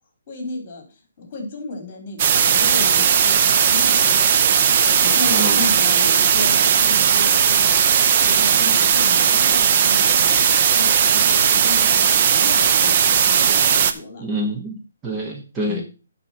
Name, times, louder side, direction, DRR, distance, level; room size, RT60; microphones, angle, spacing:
voice 1, 0.3-4.7 5.0-14.2 15.7-15.8, left 2 dB, 35° left, 3 dB, 3.5 m, -34 dB
sound 1, 2.2-13.9, right 7 dB, 35° right, 0.7 m, -17 dB
voice 2, 5.3-5.7 14.2-15.8, right 1 dB, 15° right, 1 dB, 1.0 m, -27 dB
11.0 x 4.1 x 6.2 m, 0.34 s
hypercardioid pair, 160°, 0 cm